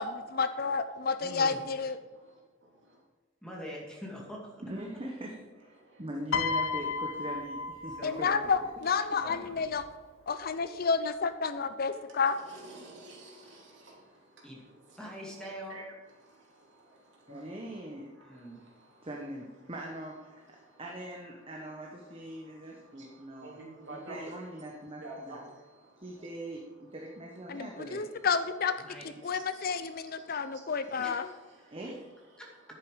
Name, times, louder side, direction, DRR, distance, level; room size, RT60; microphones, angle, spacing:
voice 1, 0.0-2.0 8.0-9.8 10.3-12.4 27.5-28.8 29.2-31.3, left 5 dB, 50° left, 11 dB, 0.5 m, -30 dB
voice 2, 1.2-1.6 3.4-4.5 8.0-8.2 9.2-9.6 14.4-14.6 15.0-15.8 18.2-18.6 28.8-29.1 31.0-31.4 32.4-32.5, equal, 5° left, -3 dB, 2.3 m, -43 dB
voice 3, 4.6-5.3 6.0-8.3 8.6-8.7 17.3-18.1 19.0-20.4 20.8-23.6 23.9-25.4 26.0-28.1 31.7-32.1, right 1 dB, 30° right, -1 dB, 1.2 m, -41 dB
Piano, 6.3-8.7 9.7-10.0, left 4 dB, 85° left, 0.7 m, -33 dB
voice 4, 12.5-14.4 15.4-15.8 16.2-17.4 20.7-20.8 22.4-24.2 25.0-25.4 29.3-29.7 31.6-31.7, right 2 dB, 60° right, -3 dB, 3.2 m, -49 dB
10.5 x 8.5 x 5.0 m, 1.3 s
head